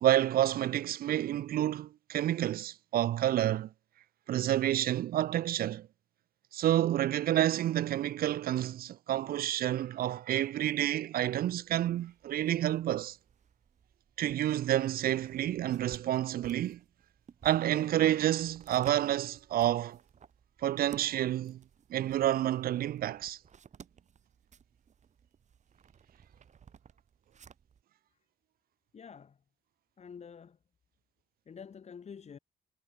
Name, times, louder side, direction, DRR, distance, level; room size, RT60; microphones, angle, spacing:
voice 1, 0.0-3.7 4.3-5.9 6.5-13.2 14.2-16.8 17.4-20.0 20.6-21.6 21.9-23.4, right 12 dB, 70° right, 0.4 m, -29 dB
sound 1, 11.5-27.8, right 7 dB, 45° right, 4.1 m, -57 dB
voice 2, 28.9-29.4 30.0-30.6 31.5-32.4, left 6 dB, 45° left, 7.6 m, -48 dB
wide cardioid pair, 150°, 16 cm